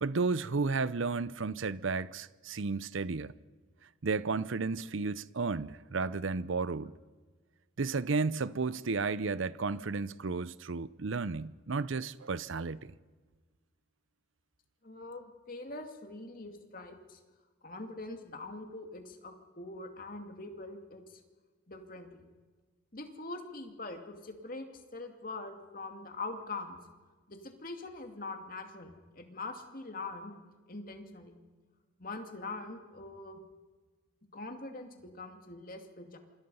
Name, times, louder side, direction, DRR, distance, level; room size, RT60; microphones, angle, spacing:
voice 1, 0.0-3.3 4.0-6.9 7.8-12.9, right 4 dB, 65° right, 0.6 m, -33 dB
voice 2, 14.8-17.2 17.6-21.2 21.7-22.2 22.9-24.6 24.9-26.8 27.3-30.3 30.7-31.4 32.0-33.4 34.3-36.2, left 3 dB, 40° left, 2.4 m, -43 dB
27.5 x 25.5 x 5.6 m
head